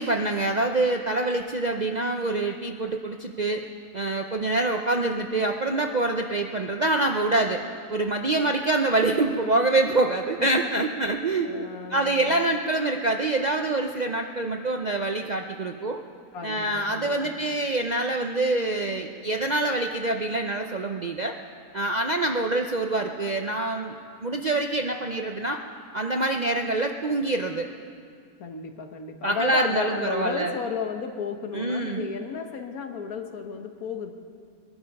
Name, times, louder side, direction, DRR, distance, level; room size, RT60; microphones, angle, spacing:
voice 1, 0.0-3.6 3.9-7.6 7.9-11.5 11.9-16.0 16.4-21.3 21.7-25.6 25.9-27.7 29.2-30.5 31.5-32.1, right 2 dB, 50° right, 3 dB, 0.5 m, -25 dB
voice 2, 10.4-10.8 11.4-12.5 16.3-17.4 28.4-34.1, left 5 dB, 75° left, 5 dB, 1.6 m, -33 dB
21.0 x 11.5 x 5.4 m, 2.2 s
omnidirectional pair, 1.6 m